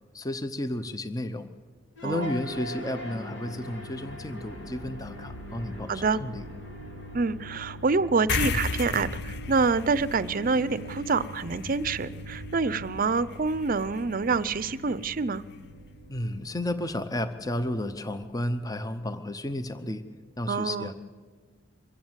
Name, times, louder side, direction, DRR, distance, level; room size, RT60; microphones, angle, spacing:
voice 1, 0.1-1.5 2.0-6.4 16.1-20.0 20.4-20.9, left 1 dB, 20° left, 11 dB, 0.8 m, -32 dB
sound 1, 2.0-20.3, equal, 75° left, 3.7 m, -43 dB
voice 2, 2.0-2.3 5.9-6.2 7.1-15.4 20.5-20.9, right 4 dB, 45° right, 17 dB, 0.6 m, -26 dB
sound 2, 8.3-15.1, left 5 dB, 60° left, 0.8 m, -36 dB
24.0 x 14.5 x 8.0 m, 1.5 s
head